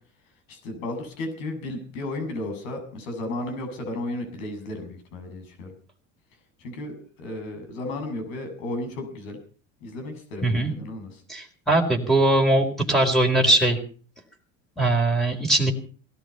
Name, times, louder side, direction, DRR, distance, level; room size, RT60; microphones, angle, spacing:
voice 1, 0.5-5.7 6.6-9.4 9.8-11.2, left 2 dB, 85° left, 6 dB, 7.8 m, -34 dB
voice 2, 11.3-13.8 14.8-15.7, right 1 dB, ahead, -1 dB, 4.5 m, -21 dB
19.5 x 13.0 x 5.6 m, 0.41 s
supercardioid pair, 90°, 39 cm